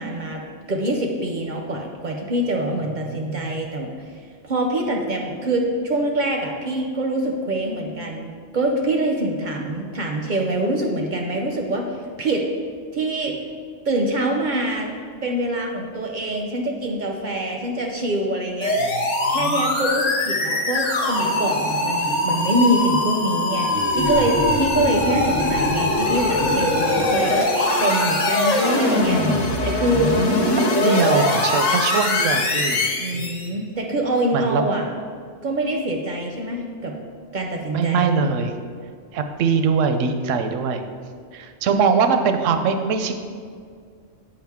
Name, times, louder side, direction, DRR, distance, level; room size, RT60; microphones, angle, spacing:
voice 1, 0.0-3.9 4.4-12.5 12.9-13.4 13.9-14.9 15.2-18.8 19.3-23.7 24.0-30.3 32.9-34.9 35.4-37.0 37.3-38.1 41.7-41.8, right 1 dB, 55° right, 2 dB, 0.5 m, -25 dB
voice 2, 3.0-3.5 18.8-19.7 21.7-22.2 30.7-32.8 33.1-33.3 34.3-34.6 37.7-38.5 39.1-40.8 41.3-43.1, right 5 dB, 80° right, 7 dB, 0.9 m, -22 dB
sound 1, 18.6-33.5, left 1 dB, 80° left, 1.2 m, -21 dB
7.7 x 4.9 x 3.5 m, 2.1 s
omnidirectional pair, 1.3 m